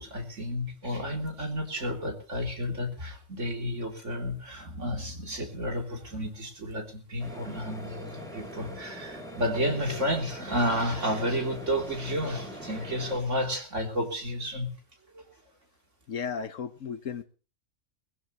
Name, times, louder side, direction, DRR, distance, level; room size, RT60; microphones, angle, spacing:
voice 1, 0.0-14.7 15.1-15.2, equal, 65° right, 3.7 m, -31 dB
sound 1, 7.2-13.2, equal, ahead, 3.8 m, -42 dB
voice 2, 16.1-17.2, left 6 dB, 70° left, 1.5 m, -34 dB
21.0 x 15.5 x 3.1 m
omnidirectional pair, 1.4 m